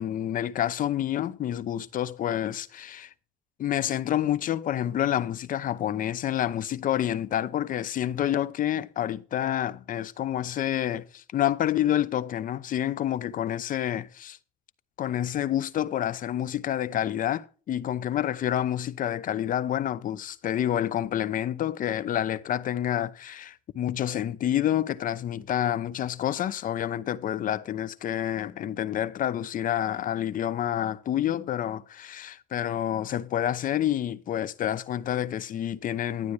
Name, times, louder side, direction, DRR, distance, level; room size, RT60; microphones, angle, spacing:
voice 1, 0.0-3.1 3.6-14.4 15.0-36.3, left 11 dB, 55° left, 0.8 m, -28 dB
12.0 x 9.2 x 3.3 m
cardioid pair, 110°, 17 cm